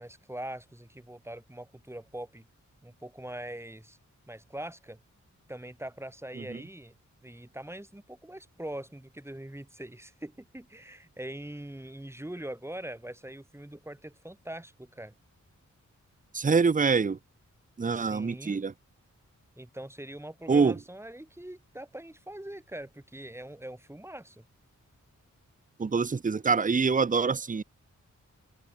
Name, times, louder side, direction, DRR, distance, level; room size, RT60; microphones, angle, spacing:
voice 1, 0.0-2.5 2.8-4.0 4.3-5.0 5.5-7.0 7.2-15.1 17.9-18.6 19.6-24.5, right 1 dB, 10° right, 5.5 m, -42 dB
voice 2, 16.3-17.2 17.8-18.7 20.5-20.7 25.8-27.6, right 5 dB, 25° right, 0.8 m, -25 dB
open air
wide cardioid pair, 180°, 31 cm